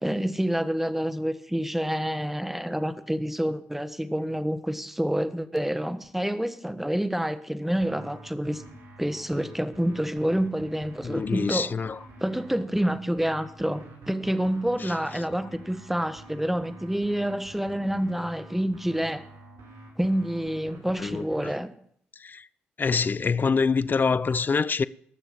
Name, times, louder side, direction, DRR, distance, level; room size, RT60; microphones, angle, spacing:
voice 1, 0.0-8.6 9.0-11.7 12.2-19.2 20.0-21.7, equal, 5° right, 1.4 m, -28 dB
sound 1, 7.8-21.5, right 2 dB, 75° right, 5.0 m, -47 dB
voice 2, 11.0-12.0 14.8-15.2 21.0-21.3 22.2-22.5 22.8-24.8, left 5 dB, 35° left, 0.5 m, -25 dB
18.5 x 6.9 x 7.1 m
hypercardioid pair, 45°, 5 cm